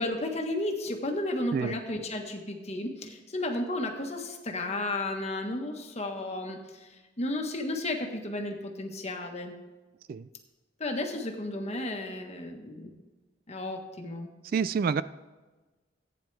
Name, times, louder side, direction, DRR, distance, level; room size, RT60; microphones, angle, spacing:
voice 1, 0.0-9.6 10.8-12.9 13.5-14.3, left 2 dB, 35° left, 3 dB, 1.4 m, -33 dB
voice 2, 14.5-15.0, right 6 dB, 50° right, 16 dB, 0.3 m, -27 dB
15.0 x 9.3 x 3.4 m, 1.2 s
head